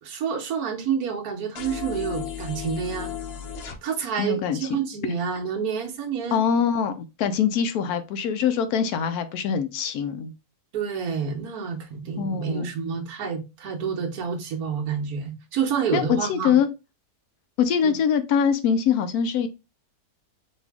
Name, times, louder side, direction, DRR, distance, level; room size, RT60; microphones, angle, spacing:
voice 1, 0.0-3.1 3.8-6.4 10.7-16.6 17.8-17.9, right 6 dB, 75° right, 1.3 m, -28 dB
sound 1, 1.6-3.8, left 9 dB, 60° left, 0.6 m, -34 dB
voice 2, 4.2-4.6 6.3-10.3 12.2-12.6 15.9-16.7 17.6-19.5, left 7 dB, 80° left, 1.1 m, -23 dB
4.3 x 2.6 x 3.4 m
omnidirectional pair, 1.6 m